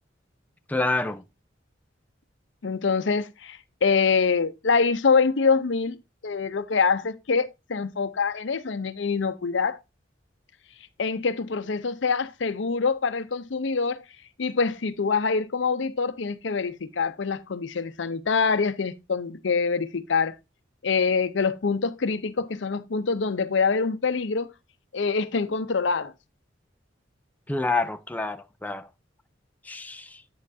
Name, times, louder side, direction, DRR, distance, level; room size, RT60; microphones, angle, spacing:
voice 1, 0.7-1.2 27.5-28.9 29.6-30.2, left 3 dB, 10° left, 0.4 m, -28 dB
voice 2, 2.6-6.0 6.2-9.8 11.0-14.0 14.4-20.4 20.8-24.5 24.9-26.1, left 5 dB, 70° left, 0.6 m, -25 dB
9.3 x 7.6 x 2.6 m
head